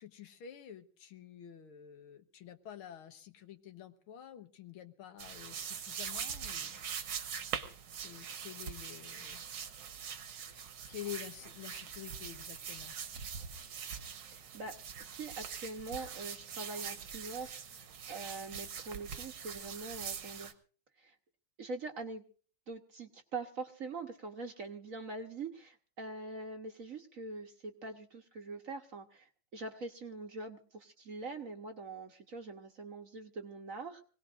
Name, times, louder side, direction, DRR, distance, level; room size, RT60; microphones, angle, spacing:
voice 1, 0.0-6.8 7.1-7.4 8.0-9.4 10.9-13.0, left 10 dB, 85° left, 8 dB, 2.0 m, -49 dB
sound 1, 5.2-20.5, right 7 dB, 80° right, 2.1 m, -43 dB
voice 2, 14.2-20.5 21.0-21.2 21.6-22.2 22.7-34.0, right 3 dB, 45° right, 5 dB, 1.3 m, -44 dB
25.5 x 18.0 x 2.6 m, 0.40 s
omnidirectional pair, 2.3 m